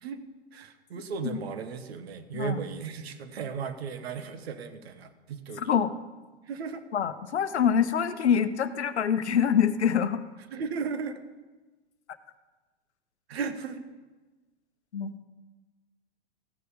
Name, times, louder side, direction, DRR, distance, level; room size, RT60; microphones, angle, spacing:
voice 1, 0.5-5.7 6.5-6.9 10.5-11.2 13.3-13.8, right 5 dB, 65° right, 9 dB, 1.2 m, -35 dB
voice 2, 2.3-2.6 5.6-5.9 6.9-10.2 14.9-15.2, left 8 dB, 75° left, 12 dB, 0.8 m, -25 dB
14.5 x 6.8 x 5.2 m, 1.2 s
figure-of-eight pair, 105°, 34 cm